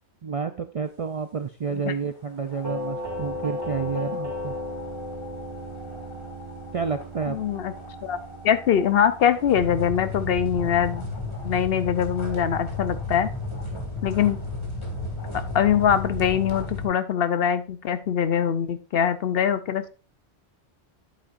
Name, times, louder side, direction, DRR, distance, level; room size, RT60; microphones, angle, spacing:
voice 1, 0.2-4.5 6.7-7.4, right 5 dB, 50° right, 8 dB, 0.4 m, -30 dB
sound 1, 2.5-16.8, left 2 dB, 25° left, 1.9 m, -35 dB
Doorbell, 2.6-11.5, left 1 dB, 20° right, 2.6 m, -36 dB
voice 2, 7.3-7.7 8.0-8.2 8.4-11.1 11.4-13.3 14.0-14.4 15.5-19.9, left 8 dB, 65° left, 12 dB, 0.8 m, -23 dB
9.9 x 8.4 x 2.5 m, 0.35 s
omnidirectional pair, 1.1 m